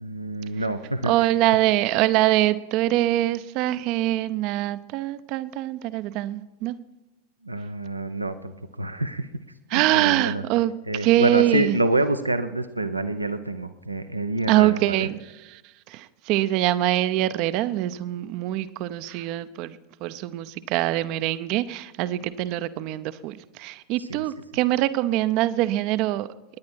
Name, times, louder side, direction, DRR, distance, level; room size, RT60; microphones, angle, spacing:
voice 1, 0.0-1.3 7.4-9.4 9.7-10.4 10.9-15.1 24.0-24.2, right 2 dB, 85° right, 9 dB, 0.9 m, -27 dB
voice 2, 1.0-6.8 9.7-10.7 11.0-11.8 14.5-15.2 15.9-26.3, right 15 dB, 40° right, 14 dB, 0.8 m, -24 dB
29.0 x 10.5 x 4.6 m, 1.0 s
figure-of-eight pair, 90°, 0 cm